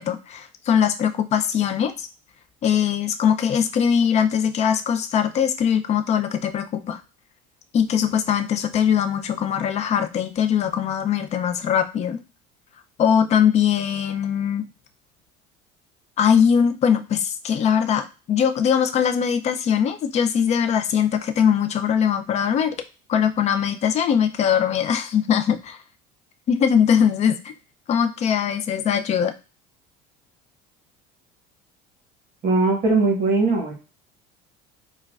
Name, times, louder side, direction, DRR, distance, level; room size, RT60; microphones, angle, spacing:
voice 1, 0.0-2.1 2.6-7.0 7.7-12.2 13.0-14.7 16.2-22.7 23.1-25.8 26.5-27.5 27.9-29.3, left 8 dB, 35° left, 8 dB, 0.4 m, -21 dB
voice 2, 32.4-33.7, right 3 dB, 40° right, 0 dB, 1.2 m, -20 dB
4.4 x 2.2 x 2.3 m, 0.32 s
cardioid pair, 120°, 21 cm